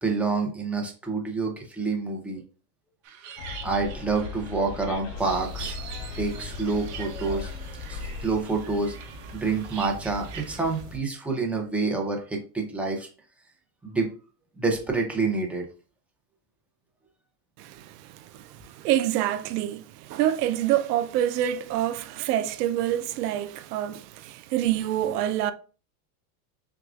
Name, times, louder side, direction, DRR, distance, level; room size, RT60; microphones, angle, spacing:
voice 1, 0.0-2.4 3.6-5.8 6.2-7.5 7.9-8.9 9.3-13.1 13.8-14.1 14.6-15.6, right 4 dB, 5° right, 0.7 m, -27 dB
sound 1, 3.0-10.8, right 8 dB, 40° right, 0.8 m, -45 dB
Bus, 3.4-8.4, left 5 dB, 80° left, 1.0 m, -37 dB
sound 2, 5.2-11.0, right 2 dB, 55° right, 1.2 m, -42 dB
voice 2, 17.6-25.5, right 12 dB, 75° right, 0.6 m, -27 dB
6.5 x 2.4 x 2.4 m
supercardioid pair, 125°, 47 cm